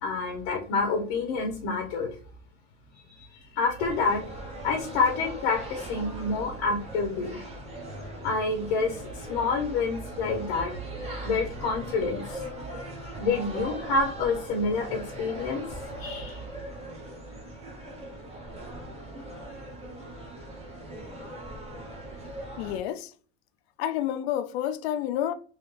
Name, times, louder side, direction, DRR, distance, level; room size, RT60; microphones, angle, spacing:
voice 1, 0.0-2.2 3.1-4.3 4.6-7.4 8.2-10.7 11.2-12.4 13.2-16.4, left 4 dB, 60° left, 0.9 m, -28 dB
sound 1, 3.8-22.8, right 1 dB, 20° right, 0.9 m, -40 dB
voice 2, 22.6-23.1 23.8-25.3, left 11 dB, 85° left, 0.5 m, -29 dB
3.1 x 2.3 x 3.2 m
supercardioid pair, 135°, 31 cm